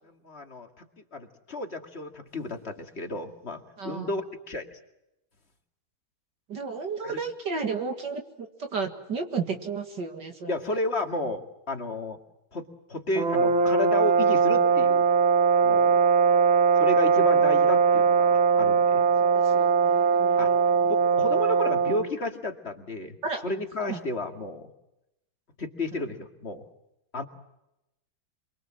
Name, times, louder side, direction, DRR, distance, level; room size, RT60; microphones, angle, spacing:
voice 1, 0.0-0.9 1.1-4.8 7.0-7.2 10.5-12.2 12.5-15.1 15.6-16.0 16.8-19.0 20.4-20.5 20.8-23.2 23.4-24.7 25.6-26.7 27.1-27.2, left 2 dB, 30° left, 5 dB, 2.3 m, -32 dB
voice 2, 3.8-4.1 6.5-8.2 8.6-10.5 19.2-20.7 23.2-23.4 23.8-24.0, right 5 dB, 60° right, 5 dB, 2.6 m, -33 dB
sound 1, 13.2-22.1, right 5 dB, 75° right, 2.5 m, -21 dB
28.0 x 23.0 x 7.5 m, 0.86 s
omnidirectional pair, 2.2 m